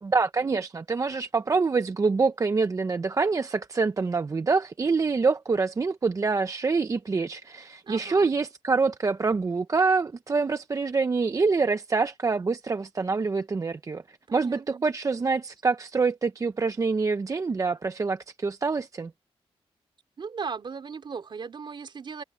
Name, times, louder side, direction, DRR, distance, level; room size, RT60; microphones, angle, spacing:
voice 1, 0.0-19.1, right 4 dB, 35° right, 0.7 m, -26 dB
voice 2, 7.8-8.3 14.3-14.9 20.2-22.2, right 5 dB, 50° right, 3.5 m, -37 dB
open air
wide cardioid pair, 120°, 10 cm